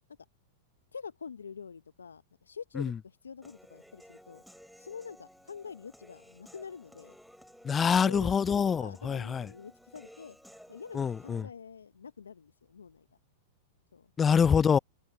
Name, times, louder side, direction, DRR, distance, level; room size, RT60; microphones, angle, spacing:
voice 1, 0.9-4.4 4.8-7.2 8.0-8.3 8.8-10.4 10.7-13.1 13.9-14.1, left 6 dB, 85° left, 0.7 m, -46 dB
Human voice / Piano, 3.4-11.4, equal, ahead, 3.8 m, -56 dB
voice 2, 7.6-9.5 10.9-11.5 14.2-14.8, left 6 dB, 20° left, 0.4 m, -25 dB
open air
hypercardioid pair, 105°, 0 cm